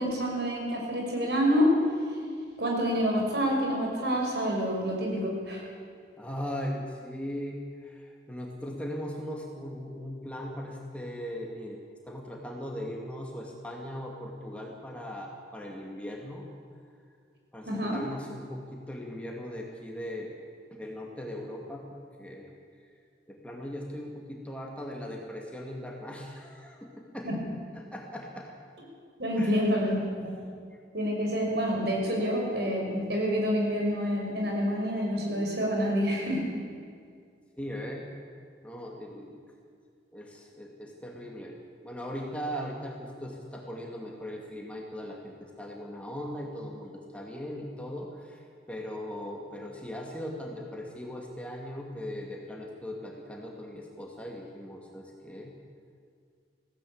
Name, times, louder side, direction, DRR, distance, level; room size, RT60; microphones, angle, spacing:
voice 1, 0.0-1.7 2.6-5.6 17.7-18.0 27.2-27.4 29.2-30.4 30.9-36.4, equal, 65° right, -1 dB, 5.7 m, -27 dB
voice 2, 6.2-11.8 12.0-16.5 17.5-20.3 20.7-21.8 22.2-22.5 23.3-27.3 27.7-28.5 29.4-29.6 37.6-38.1 38.6-39.4 40.1-41.6 41.8-55.5, equal, 5° left, -1 dB, 2.2 m, -39 dB
20.5 x 16.5 x 8.7 m, 2.2 s
head